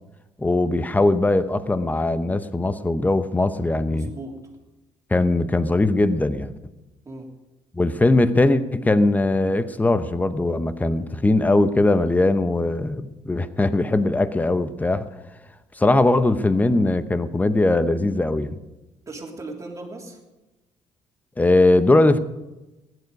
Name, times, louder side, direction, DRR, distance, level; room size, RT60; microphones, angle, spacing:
voice 1, 0.4-4.1 5.1-6.5 7.7-15.1 15.8-18.6 21.4-22.2, left 2 dB, 15° left, 12 dB, 0.8 m, -20 dB
voice 2, 3.9-4.4 7.0-7.3 19.1-20.2, right 2 dB, 25° right, -1 dB, 3.2 m, -37 dB
15.5 x 11.0 x 5.3 m, 1.0 s
cardioid pair, 95°, 12 cm